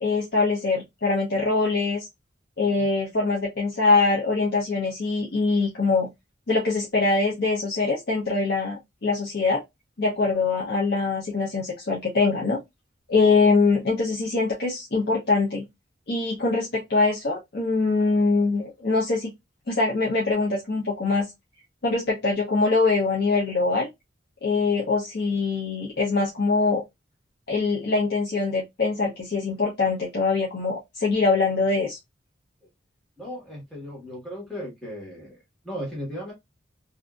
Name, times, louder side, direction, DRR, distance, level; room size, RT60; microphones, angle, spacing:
voice 1, 0.0-2.1 2.6-6.1 6.5-9.6 10.0-12.6 13.1-15.6 16.1-19.3 19.7-21.3 21.8-23.9 24.4-26.8 27.5-32.0, left 3 dB, 55° left, 0.8 m, -23 dB
voice 2, 2.6-2.9 13.1-13.3 33.2-36.3, equal, ahead, 1.4 m, -37 dB
2.7 x 2.5 x 2.3 m
head